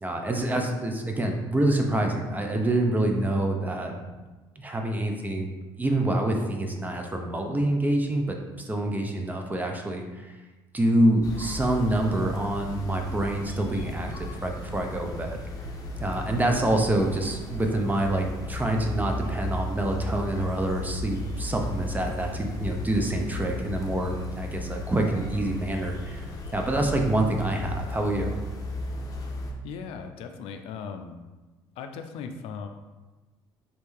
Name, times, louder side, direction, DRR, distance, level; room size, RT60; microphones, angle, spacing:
voice 1, 0.0-4.0 4.6-5.5 5.8-8.4 8.7-10.3 10.7-15.4 16.0-28.4, right 1 dB, 15° right, 3 dB, 0.7 m, -26 dB
sound 1, 11.2-29.5, left 1 dB, 35° left, 0.7 m, -35 dB
voice 2, 29.6-31.1 31.8-32.7, left 6 dB, 75° left, 6 dB, 0.4 m, -38 dB
4.3 x 3.2 x 3.2 m, 1.2 s
supercardioid pair, 85°, 10 cm